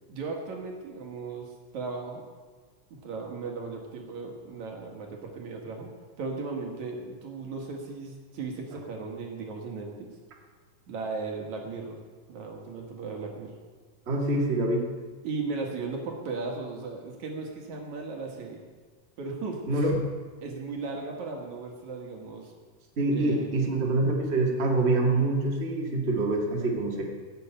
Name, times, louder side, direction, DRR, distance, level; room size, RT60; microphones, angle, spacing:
voice 1, 0.1-2.2 2.9-5.9 6.2-10.1 10.9-12.0 12.3-13.6 15.2-18.6 19.2-19.8 20.4-22.5 23.1-23.5, right 4 dB, 60° right, 1 dB, 3.0 m, -36 dB
voice 2, 14.1-14.9 19.7-20.0 23.0-27.0, right 2 dB, 25° right, -1 dB, 2.0 m, -25 dB
16.5 x 7.1 x 8.9 m, 1.4 s
omnidirectional pair, 3.8 m